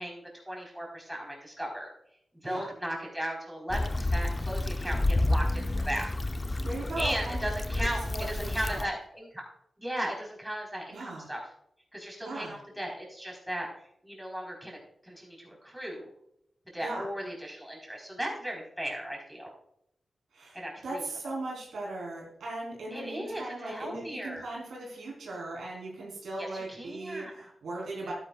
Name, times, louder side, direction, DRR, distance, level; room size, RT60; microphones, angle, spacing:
voice 1, 0.0-1.9 2.3-6.1 7.0-9.5 9.8-11.5 11.9-13.7 14.0-16.1 16.7-19.5 20.5-21.4 22.9-24.5 26.4-27.5, equal, 10° right, -1 dB, 4.4 m, -37 dB
Stream / Traffic noise roadway noise / Trickle dribble, 3.7-8.9, left 2 dB, 30° left, 0.7 m, -30 dB
voice 2, 6.6-8.9 10.9-11.3 12.2-12.6 16.8-17.0 20.3-28.1, right 2 dB, 85° right, -4 dB, 4.0 m, -38 dB
11.5 x 10.0 x 2.5 m, 0.73 s
cardioid pair, 55°, 0 cm